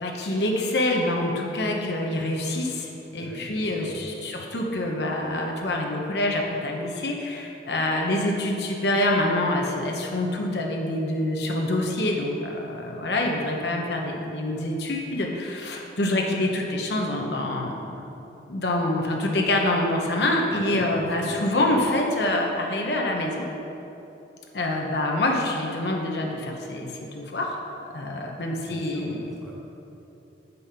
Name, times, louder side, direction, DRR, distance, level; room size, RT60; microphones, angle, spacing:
voice 1, 0.0-17.8 18.5-23.5 24.5-27.6 27.9-29.2, left 1 dB, 70° left, 0 dB, 0.9 m, -26 dB
voice 2, 3.1-4.1 20.5-21.4 28.6-29.6, right 1 dB, ahead, -6 dB, 1.4 m, -41 dB
8.2 x 5.5 x 5.6 m, 3.0 s
head